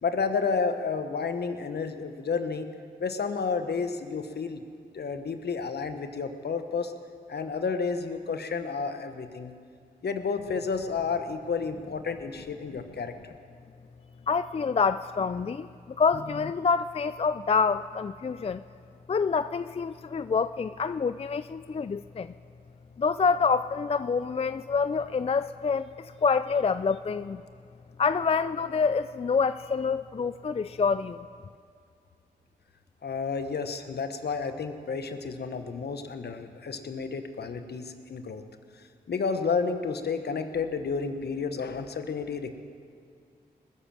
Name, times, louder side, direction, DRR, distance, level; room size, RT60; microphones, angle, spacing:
voice 1, 0.0-2.7 3.0-4.6 4.9-6.9 7.3-9.5 10.0-13.3 33.0-38.4 38.8-42.6, left 5 dB, 65° left, 8 dB, 1.1 m, -31 dB
voice 2, 14.3-18.6 19.1-22.3 23.0-27.4 28.0-31.3, left 5 dB, 35° left, 13 dB, 0.4 m, -27 dB
20.5 x 7.4 x 7.6 m, 2.3 s
supercardioid pair, 40°, 18 cm